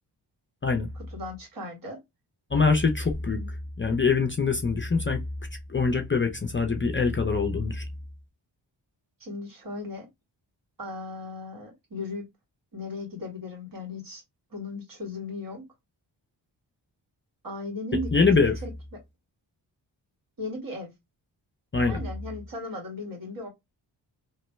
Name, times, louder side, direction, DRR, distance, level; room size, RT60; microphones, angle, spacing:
voice 1, 1.0-2.0 3.3-3.5 9.2-10.1 10.8-12.2 12.7-14.2 14.5-15.7 17.4-18.1 18.4-18.7 20.4-20.9 21.9-23.5, left 2 dB, 50° right, 1.9 m, -36 dB
voice 2, 2.5-5.2 5.7-7.8 18.1-18.6 21.7-22.0, left 4 dB, 25° left, 0.6 m, -24 dB
3.0 x 2.2 x 3.1 m
cardioid pair, 70°, 45 cm